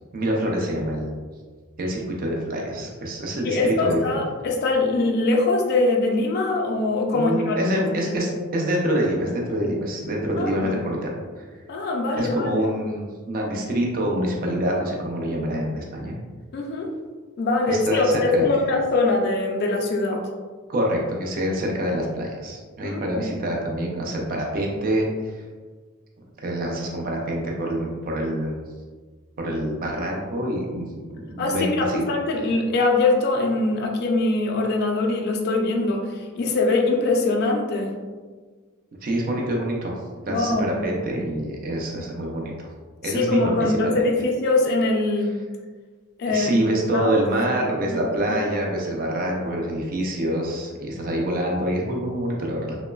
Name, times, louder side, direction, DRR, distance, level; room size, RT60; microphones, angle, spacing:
voice 1, 0.1-1.1 1.8-4.2 7.1-11.0 11.4-11.5 12.2-16.2 17.7-18.5 20.7-25.3 26.4-28.6 29.4-32.0 39.0-40.0 40.2-42.7 43.0-43.9 46.3-52.8, right 1 dB, 40° right, -1 dB, 0.4 m, -26 dB
voice 2, 3.4-8.2 10.4-10.8 11.7-12.6 16.5-16.9 17.4-20.2 22.8-23.3 31.4-37.9 40.3-40.8 43.0-45.4 46.2-46.5 46.9-47.1 47.9-48.0 48.3-48.4, left 2 dB, 45° left, 1 dB, 0.3 m, -23 dB
3.0 x 2.1 x 2.2 m, 1.4 s
head